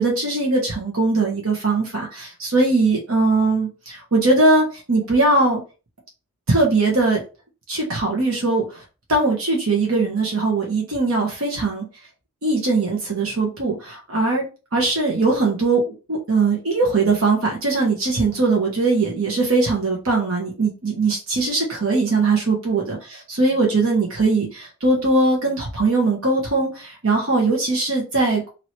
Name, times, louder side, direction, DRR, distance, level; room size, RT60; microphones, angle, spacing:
voice 1, 0.0-5.6 6.5-7.2 7.7-8.8 9.1-11.8 12.4-14.4 14.7-23.0 23.4-28.5, right 3 dB, 80° right, 1.2 m, -20 dB
3.1 x 2.9 x 4.3 m
head